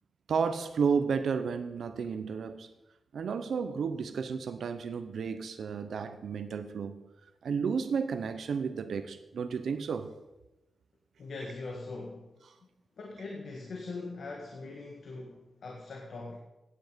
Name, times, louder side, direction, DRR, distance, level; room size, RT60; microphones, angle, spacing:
voice 1, 0.3-2.7 3.1-7.0 7.4-10.1, right 6 dB, 75° right, 0.8 m, -32 dB
voice 2, 11.2-12.3 13.0-16.4, left 3 dB, 65° left, 1.9 m, -41 dB
16.0 x 9.7 x 5.2 m
wide cardioid pair, 155°, 0 cm